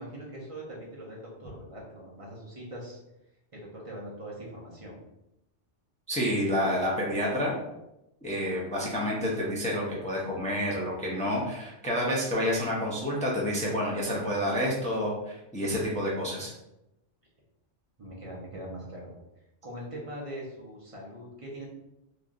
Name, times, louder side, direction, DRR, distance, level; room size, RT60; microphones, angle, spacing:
voice 1, 0.0-3.0 3.5-5.0 18.0-19.2 19.6-21.7, right 1 dB, 35° right, -4 dB, 0.7 m, -41 dB
voice 2, 6.1-7.6 8.2-16.5, equal, 10° left, -4 dB, 0.3 m, -29 dB
3.3 x 2.6 x 2.4 m, 0.88 s
omnidirectional pair, 1.2 m